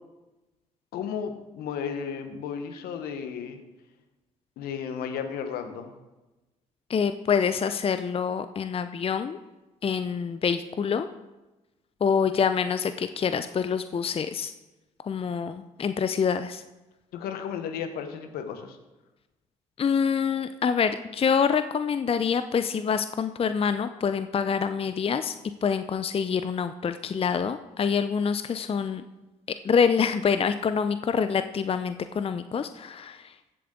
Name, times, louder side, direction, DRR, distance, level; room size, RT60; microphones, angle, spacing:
voice 1, 0.9-3.6 4.6-5.9 17.1-18.8, left 7 dB, 75° left, 8 dB, 1.2 m, -34 dB
voice 2, 6.9-9.4 9.8-11.1 12.0-14.5 15.1-16.6 19.8-25.3 25.6-29.0 29.6-33.3, left 6 dB, 35° left, 10 dB, 0.6 m, -26 dB
14.5 x 7.7 x 3.8 m, 1.1 s
hypercardioid pair, 50°, 16 cm